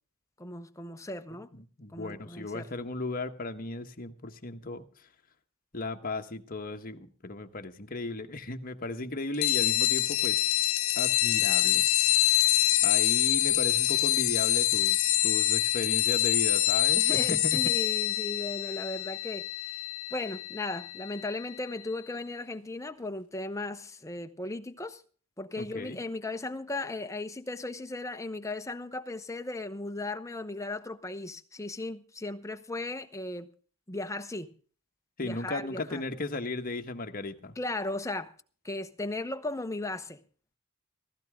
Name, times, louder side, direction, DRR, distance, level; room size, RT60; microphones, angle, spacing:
voice 1, 0.4-1.5 1.9-2.7 16.9-19.8 20.1-25.0 25.4-33.5 33.9-34.5 35.2-36.0 37.6-38.3 38.6-40.2, left 2 dB, 15° left, 1.0 m, -36 dB
voice 2, 1.5-4.8 5.7-10.4 11.0-11.9 12.8-17.6 25.6-26.0 35.2-37.5, left 2 dB, 40° left, 1.4 m, -36 dB
sound 1, 9.4-21.5, left 15 dB, 65° left, 0.5 m, -26 dB
16.5 x 15.5 x 3.7 m
head